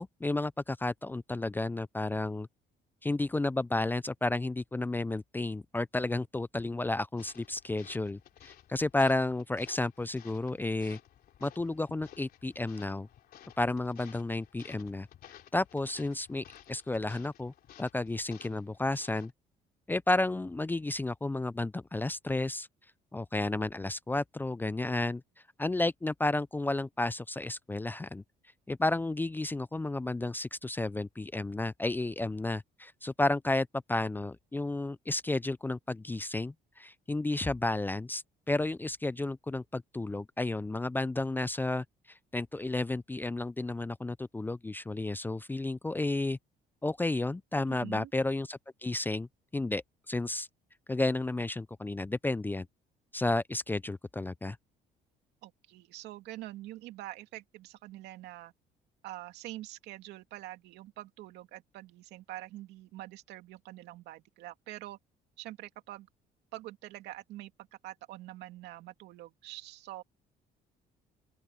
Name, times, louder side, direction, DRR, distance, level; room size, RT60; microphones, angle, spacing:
voice 1, 0.0-2.5 3.0-11.0 11.4-13.1 13.6-15.1 15.5-17.5 17.8-19.3 19.9-22.7 23.1-25.2 25.6-28.2 28.7-41.8 42.3-46.4 46.8-49.3 49.5-49.8 50.1-50.5 50.9-52.7 53.1-54.6, left 2 dB, 10° left, 0.4 m, -32 dB
sound 1, 7.2-19.3, left 11 dB, 65° left, 3.6 m, -56 dB
voice 2, 47.7-48.1 55.4-58.5 59.0-65.0 65.4-66.1 66.5-70.0, right 15 dB, 85° right, 2.5 m, -45 dB
open air
cardioid pair, 110°, 17 cm